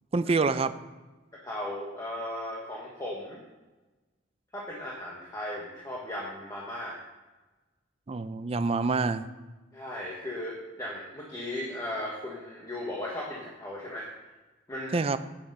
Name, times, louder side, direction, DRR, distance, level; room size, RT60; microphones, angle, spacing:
voice 1, 0.1-0.8 8.1-9.3 14.9-15.2, right 4 dB, 30° right, 12 dB, 0.4 m, -26 dB
voice 2, 1.4-3.4 4.5-7.0 9.7-14.1 14.7-15.0, left 1 dB, 15° left, -4 dB, 1.2 m, -36 dB
8.8 x 7.1 x 5.4 m, 1.2 s
head